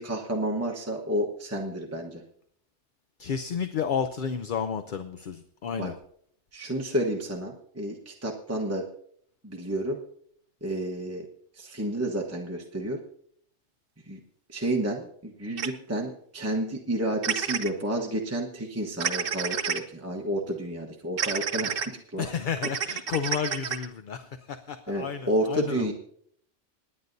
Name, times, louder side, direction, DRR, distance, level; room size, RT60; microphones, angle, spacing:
voice 1, 0.0-2.2 5.8-5.9 6.5-8.8 9.4-10.0 10.6-11.3 11.5-13.0 14.1-14.2 14.5-22.3 24.9-25.9, right 1 dB, 15° right, -1 dB, 1.0 m, -30 dB
voice 2, 3.2-5.9 22.2-25.9, left 7 dB, 55° left, 9 dB, 0.7 m, -31 dB
sound 1, 15.6-15.7 17.2-17.7 19.0-19.8 21.2-21.9 22.6-23.9, right 7 dB, 55° right, 0.9 m, -29 dB
27.5 x 9.6 x 2.7 m, 0.66 s
omnidirectional pair, 1.2 m